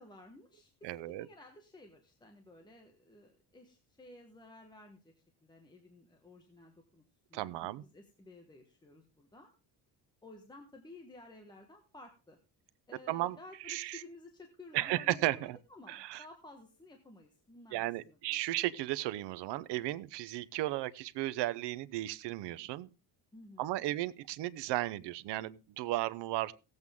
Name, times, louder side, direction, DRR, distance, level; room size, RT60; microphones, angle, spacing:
voice 1, 0.0-5.1 5.4-7.0 7.3-9.5 10.2-12.4 12.9-18.4 23.3-23.8, left 2 dB, 10° left, 1.2 m, -55 dB
voice 2, 0.8-1.3 7.3-7.8 13.1-13.4 13.7-14.0 14.7-15.6 15.9-16.2 17.7-22.9 23.6-26.5, right 16 dB, 85° right, 0.8 m, -35 dB
17.0 x 8.0 x 3.6 m
cardioid pair, 165°, 41 cm